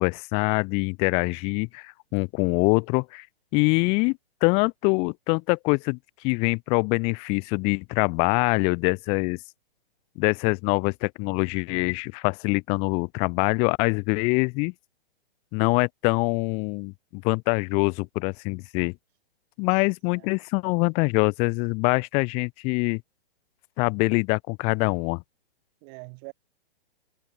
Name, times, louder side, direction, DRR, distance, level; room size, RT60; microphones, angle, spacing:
voice 1, 0.0-3.3 3.5-6.0 6.2-9.4 10.2-14.7 15.5-18.9 19.6-23.0 23.8-25.2, left 31 dB, 20° left, 0.5 m, -24 dB
voice 2, 19.7-20.3 25.8-26.3, right 39 dB, 35° right, 2.3 m, -45 dB
hypercardioid pair, 135°, 30 cm